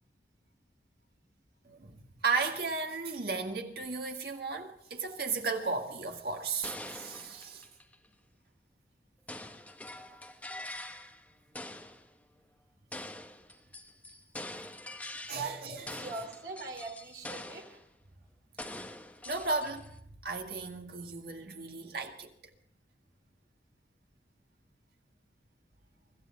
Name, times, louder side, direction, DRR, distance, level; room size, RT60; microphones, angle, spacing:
voice 1, 1.6-7.7 10.1-10.2 15.1-16.1 18.6-18.8 19.3-20.0 20.2-22.3, right 4 dB, 60° right, 1.9 m, -35 dB
sound 1, 6.6-8.1 9.3-11.3 11.5-12.1 12.9-15.6 15.9-17.8 18.6-20.0, left 1 dB, 10° left, 0.8 m, -44 dB
voice 2, 15.3-17.8, right 4 dB, 80° right, 2.8 m, -41 dB
25.0 x 13.0 x 3.8 m
head